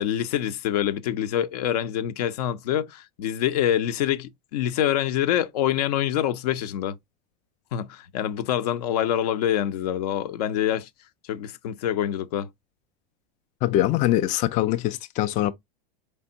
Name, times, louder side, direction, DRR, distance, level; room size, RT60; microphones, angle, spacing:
voice 1, 0.0-7.0 7.7-10.9 11.3-12.5, left 11 dB, 75° left, 0.6 m, -26 dB
voice 2, 13.6-15.5, left 14 dB, 35° left, 0.4 m, -23 dB
4.5 x 3.4 x 2.7 m
supercardioid pair, 115°, 20 cm